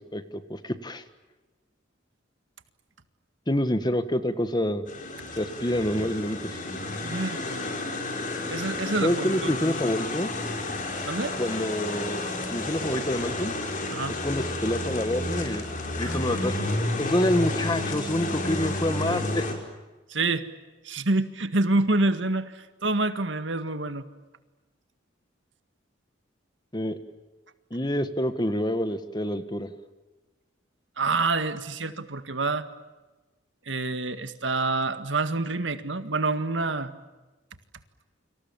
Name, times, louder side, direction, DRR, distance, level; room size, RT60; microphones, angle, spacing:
voice 1, 0.1-1.0 3.5-4.8 5.4-6.6 9.0-10.3 11.4-12.2 12.5-13.5 14.2-15.7 16.0-16.6 17.0-19.4 26.7-27.0 27.7-29.7, left 1 dB, 20° left, 11 dB, 1.6 m, -27 dB
sound 1, 4.9-19.5, left 2 dB, 45° left, 5.2 m, -31 dB
voice 2, 7.0-7.4 8.5-9.2 11.1-11.4 13.9-14.2 16.0-16.2 20.1-20.4 20.8-24.1 31.0-32.7 33.7-36.9, right 3 dB, 70° right, 10 dB, 1.9 m, -27 dB
29.5 x 26.0 x 7.2 m, 1.2 s
head